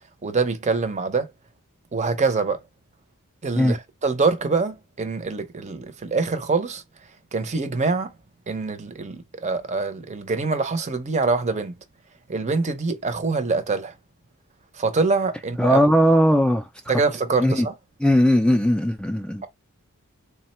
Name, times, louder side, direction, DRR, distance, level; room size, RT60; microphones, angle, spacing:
voice 1, 0.2-1.3 1.9-2.6 3.4-3.8 4.0-6.8 7.3-8.1 8.5-11.7 12.3-13.9 14.8-15.8 16.9-17.7, right 4 dB, 30° right, 0.6 m, -24 dB
voice 2, 15.6-16.7 17.4-17.7 18.0-19.4, equal, 5° left, 0.4 m, -18 dB
3.6 x 2.1 x 4.2 m
head